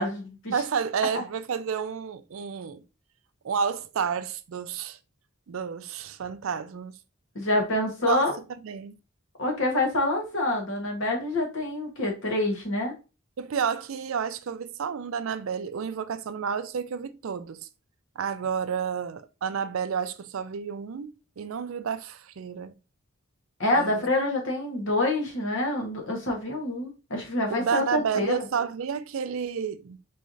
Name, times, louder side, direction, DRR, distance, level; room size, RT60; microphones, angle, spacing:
voice 1, 0.0-0.5 7.3-8.3 9.4-12.9 23.6-28.3, left 1 dB, 60° left, 1.5 m, -27 dB
voice 2, 0.5-2.8 3.4-5.0 5.5-6.9 8.0-8.2 8.5-8.9 13.4-17.7 18.2-21.1 21.4-22.7 23.7-24.1 27.5-30.0, right 6 dB, 70° right, 0.4 m, -30 dB
4.7 x 3.1 x 2.6 m
head